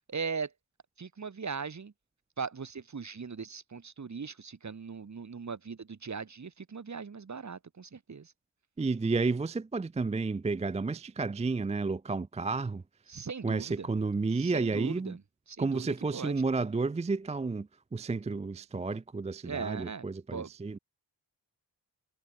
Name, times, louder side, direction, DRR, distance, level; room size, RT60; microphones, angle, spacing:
voice 1, 0.1-0.5 1.0-1.9 2.4-8.3 13.1-13.9 14.4-15.2 15.5-16.4 19.4-20.0 20.3-20.5, right 5 dB, 35° right, 0.9 m, -39 dB
voice 2, 8.8-12.8 13.4-15.2 15.6-20.8, right 3 dB, 15° right, 0.3 m, -31 dB
cardioid pair, 45°, 48 cm